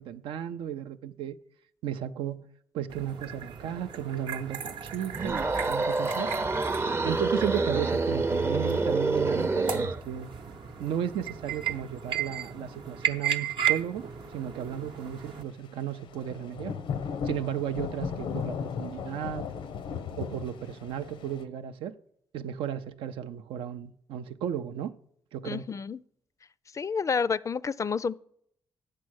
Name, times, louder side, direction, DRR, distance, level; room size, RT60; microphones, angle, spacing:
voice 1, 0.0-1.4 1.8-2.5 2.7-6.3 7.0-10.3 10.8-16.8 17.2-19.5 20.2-21.9 22.3-25.0 25.3-25.6, right 10 dB, 85° right, 0.4 m, -34 dB
sound 1, 2.9-15.4, right 9 dB, 70° right, 0.8 m, -35 dB
sound 2, 5.1-10.0, right 3 dB, 30° right, 0.5 m, -27 dB
Thunder / Rain, 15.9-21.4, left 6 dB, 85° left, 0.6 m, -36 dB
voice 2, 25.4-26.0 26.7-28.2, left 5 dB, 40° left, 0.3 m, -29 dB
8.3 x 6.5 x 6.3 m
supercardioid pair, 60°, 9 cm